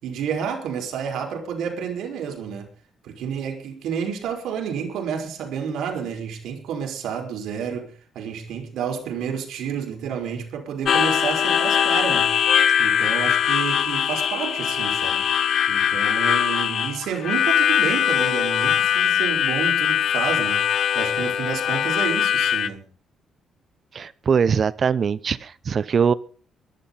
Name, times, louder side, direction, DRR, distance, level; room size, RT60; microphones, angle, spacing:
voice 1, 0.0-2.7 3.0-12.3 12.8-15.3 15.7-20.6 20.9-22.8, right 7 dB, 80° right, 5.1 m, -30 dB
Harmonica, 10.9-22.7, left 9 dB, 55° left, 1.0 m, -21 dB
voice 2, 23.9-26.1, right 6 dB, 40° right, 0.8 m, -21 dB
22.5 x 11.5 x 4.1 m
cardioid pair, 150°, 0 cm